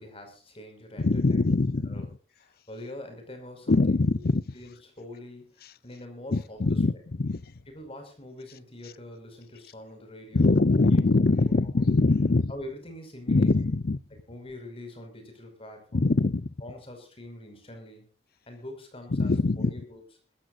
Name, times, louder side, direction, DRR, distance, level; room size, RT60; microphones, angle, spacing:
voice 1, 0.0-1.4 1.9-2.1 2.4-4.0 4.5-6.8 7.7-10.6 10.9-11.0 12.5-13.5 14.3-16.1 16.6-18.0 18.5-20.0, left 1 dB, 35° left, 5.1 m, -44 dB
voice 2, 1.0-2.1 3.7-4.4 6.3-7.5 10.3-12.5 13.3-14.0 15.9-16.5 19.1-19.7, left 3 dB, 60° left, 0.7 m, -23 dB
21.0 x 14.0 x 2.5 m
head